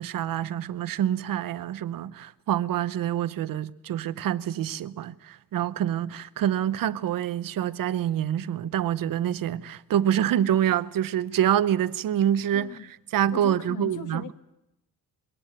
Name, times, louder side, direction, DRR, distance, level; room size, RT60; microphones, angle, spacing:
voice 1, 0.0-12.7 13.1-14.3, right 10 dB, 80° right, 0.8 m, -26 dB
voice 2, 12.5-12.9 13.3-14.3, left 7 dB, 65° left, 1.6 m, -38 dB
22.0 x 17.5 x 9.0 m
cardioid pair, 120°, 33 cm